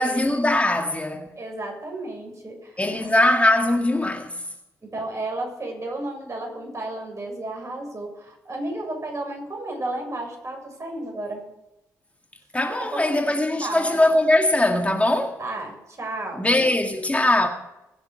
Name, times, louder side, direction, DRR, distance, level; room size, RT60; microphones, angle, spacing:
voice 1, 0.0-1.3 2.8-4.4 12.5-15.4 16.4-17.5, left 1 dB, 15° left, 2.1 m, -21 dB
voice 2, 1.4-3.1 4.8-11.4 12.8-13.3 13.6-14.0 15.4-16.7, right 2 dB, 40° right, 7.2 m, -33 dB
20.5 x 7.3 x 6.5 m
hypercardioid pair, 45°, 8 cm